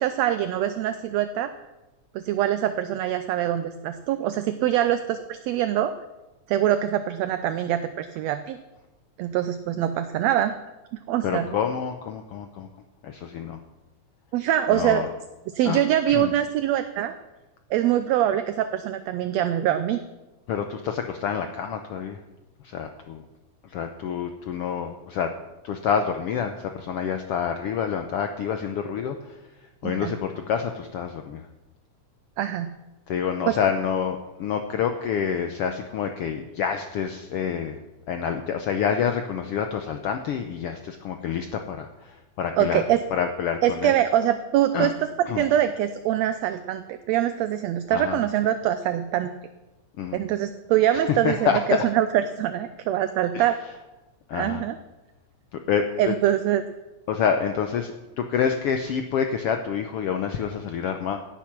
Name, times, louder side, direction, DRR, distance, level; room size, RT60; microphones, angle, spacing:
voice 1, 0.0-1.5 2.2-5.9 6.5-8.6 9.2-10.6 11.1-11.5 14.3-15.1 15.5-17.1 17.7-20.0 29.8-30.1 32.4-32.7 33.5-33.6 42.6-43.0 43.6-45.1 45.4-49.3 50.1-53.6 54.3-54.8 56.0-56.6, right 11 dB, 75° right, 10 dB, 1.7 m, -24 dB
voice 2, 11.2-12.7 13.0-13.6 14.7-15.1 15.6-15.8 16.1-16.3 20.5-22.2 22.6-23.2 23.6-25.3 25.6-29.4 29.8-31.4 33.1-37.8 38.1-42.8 43.1-43.9 44.7-44.9 45.3-45.4 47.9-48.2 50.0-50.2 50.9-51.8 53.3-53.4 54.3-54.6 55.5-56.1 57.1-61.2, left 7 dB, 70° left, 6 dB, 1.5 m, -27 dB
16.5 x 9.3 x 6.1 m, 1.1 s
omnidirectional pair, 3.4 m